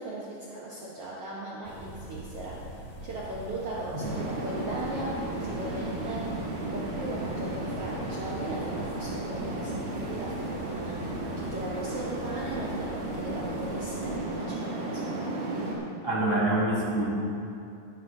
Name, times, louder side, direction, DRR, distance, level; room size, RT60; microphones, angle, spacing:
voice 1, 0.0-2.6 3.0-6.4 6.7-15.2, right 1 dB, 90° right, -5 dB, 1.3 m, -38 dB
sound 1, 1.6-14.2, equal, 45° left, 0.5 m, -44 dB
sound 2, 4.0-15.8, right 2 dB, 50° right, 2.5 m, -34 dB
voice 2, 16.0-17.0, right 1 dB, 10° left, -8 dB, 1.3 m, -26 dB
16.5 x 10.0 x 2.7 m, 2.6 s
omnidirectional pair, 4.4 m